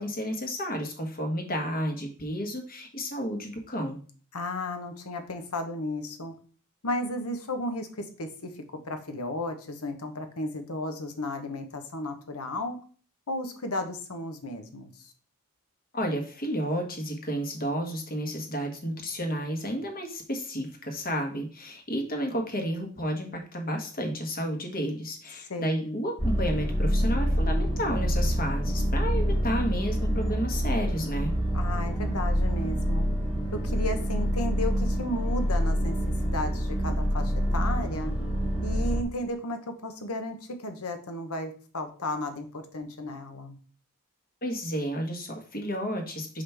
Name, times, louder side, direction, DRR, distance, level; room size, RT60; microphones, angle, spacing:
voice 1, 0.0-4.0 15.9-31.3 44.4-46.4, equal, 45° left, 3 dB, 1.4 m, -31 dB
voice 2, 4.3-6.3 6.8-12.8 13.3-15.1 25.5-26.0 31.5-33.1 33.5-36.0 36.2-38.1 38.6-43.6, left 1 dB, 80° left, 7 dB, 1.0 m, -34 dB
sound 1, 26.2-39.0, equal, 25° left, 1.8 m, -27 dB
5.8 x 5.1 x 3.4 m, 0.41 s
head